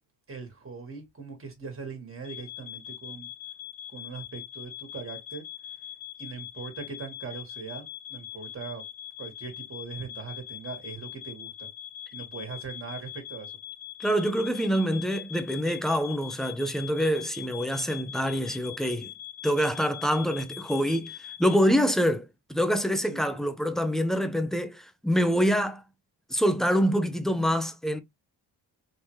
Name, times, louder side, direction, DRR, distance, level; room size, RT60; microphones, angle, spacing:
voice 1, 0.3-3.3 3.9-5.4 6.2-8.8 9.2-11.7 12.1-13.6 23.1-23.2, right 5 dB, 30° right, 2.0 m, -40 dB
sound 1, 2.2-21.6, left 13 dB, 85° left, 1.3 m, -42 dB
voice 2, 14.0-19.1 19.4-25.8 26.3-28.0, equal, ahead, 0.7 m, -26 dB
3.6 x 2.9 x 3.2 m
cardioid pair, 75°, 43 cm